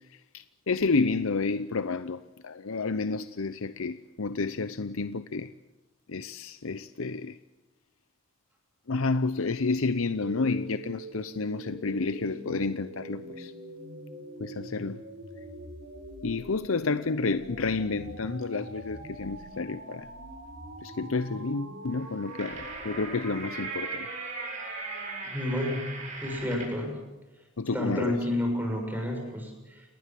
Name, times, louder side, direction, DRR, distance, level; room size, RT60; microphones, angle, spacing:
voice 1, 0.1-5.5 6.1-7.4 8.9-13.5 14.4-15.0 16.2-20.1 20.8-24.1 27.6-28.2, left 3 dB, 70° left, 0.7 m, -30 dB
sound 1, 10.2-25.2, right 1 dB, 55° right, 4.1 m, -44 dB
sound 2, 22.0-26.8, right 3 dB, 35° right, 7.3 m, -38 dB
voice 2, 25.2-25.9 26.2-27.0 27.7-30.0, left 1 dB, 10° right, 6.8 m, -30 dB
28.5 x 19.5 x 7.7 m
head